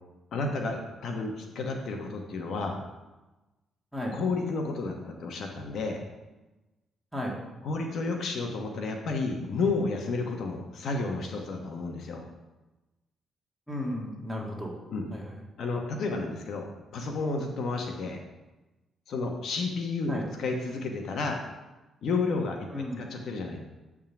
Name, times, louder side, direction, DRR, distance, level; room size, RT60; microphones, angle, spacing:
voice 1, 0.3-2.8 4.1-6.0 7.6-12.2 14.9-15.1 15.6-18.2 19.1-21.4 22.0-22.7 23.0-23.6, left 3 dB, 65° left, 2 dB, 1.0 m, -31 dB
voice 2, 13.7-14.7 15.1-15.2 20.1-20.2 22.7-23.1, left 1 dB, ahead, -2 dB, 1.9 m, -34 dB
8.9 x 3.7 x 5.9 m, 1.1 s
cardioid pair, 90°, 0 cm